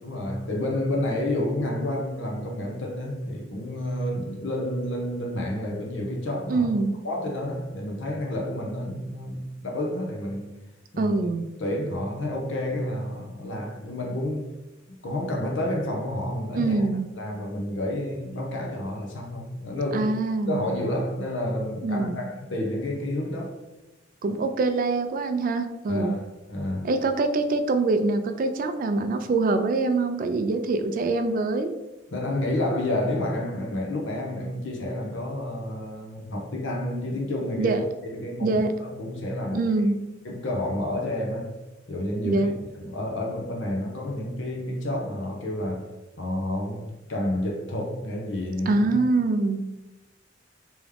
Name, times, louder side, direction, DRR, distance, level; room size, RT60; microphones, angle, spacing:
voice 1, 0.0-6.7 7.0-10.5 10.9-11.1 11.6-14.5 15.0-16.8 17.2-20.1 20.5-23.5 25.9-26.2 26.5-26.9 32.1-37.8 38.0-39.7 40.2-41.5 41.9-42.5 42.8-45.9 46.2-48.9, left 1 dB, 70° left, 0.8 m, -30 dB
voice 2, 6.5-6.9 11.0-11.4 16.5-17.1 19.9-20.7 21.8-22.2 24.2-26.2 26.8-31.7 37.6-37.8 38.4-38.7 39.5-40.0 42.2-42.5 48.7-49.6, right 3 dB, 45° right, 0.3 m, -24 dB
3.5 x 3.0 x 3.4 m
head